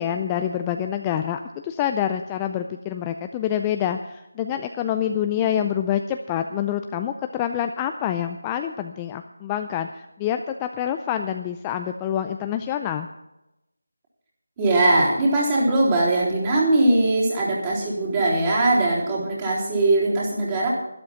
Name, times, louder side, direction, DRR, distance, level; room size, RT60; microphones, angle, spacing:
voice 1, 0.0-13.1, left 10 dB, 15° left, 6 dB, 0.4 m, -26 dB
voice 2, 14.6-20.7, right 2 dB, 20° right, -5 dB, 3.8 m, -20 dB
12.5 x 12.0 x 5.7 m, 0.93 s
figure-of-eight pair, 165°, 0 cm